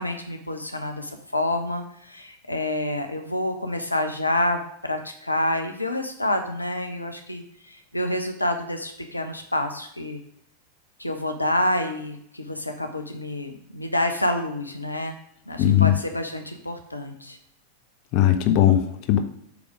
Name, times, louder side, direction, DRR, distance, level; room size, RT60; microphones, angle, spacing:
voice 1, 0.0-10.2 11.0-15.2 15.5-17.4, left 1 dB, 85° left, 5 dB, 0.7 m, -28 dB
voice 2, 15.6-15.9 18.1-19.2, left 11 dB, 45° left, 7 dB, 0.8 m, -18 dB
8.0 x 3.5 x 5.0 m, 0.70 s
figure-of-eight pair, 90°, 0 cm